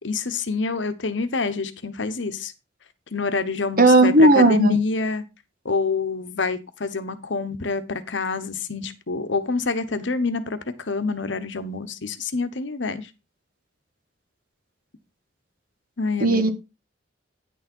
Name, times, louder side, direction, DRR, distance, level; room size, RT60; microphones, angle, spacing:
voice 1, 0.0-2.5 3.1-5.2 5.6-13.1 16.0-16.5, left 3 dB, 75° left, 11 dB, 1.1 m, -27 dB
voice 2, 3.8-4.8 16.2-16.5, right 1 dB, 50° right, 7 dB, 1.6 m, -15 dB
9.8 x 6.5 x 4.5 m, 0.27 s
head